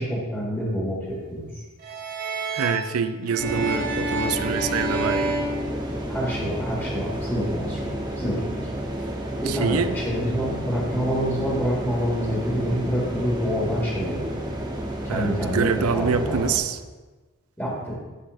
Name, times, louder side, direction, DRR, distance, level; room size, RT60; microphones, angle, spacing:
voice 1, 0.0-1.5 6.1-8.7 9.4-14.2 15.0-16.5 17.6-18.0, equal, 10° left, -5 dB, 1.8 m, -27 dB
sound 1, 1.8-6.4, right 1 dB, 40° right, 1.0 m, -29 dB
voice 2, 2.5-5.4 9.5-9.9 15.1-16.8, right 6 dB, 80° right, 11 dB, 0.5 m, -26 dB
sound 2, 3.4-16.6, right 1 dB, 20° right, 0.9 m, -31 dB
10.0 x 8.4 x 2.6 m, 1.3 s
head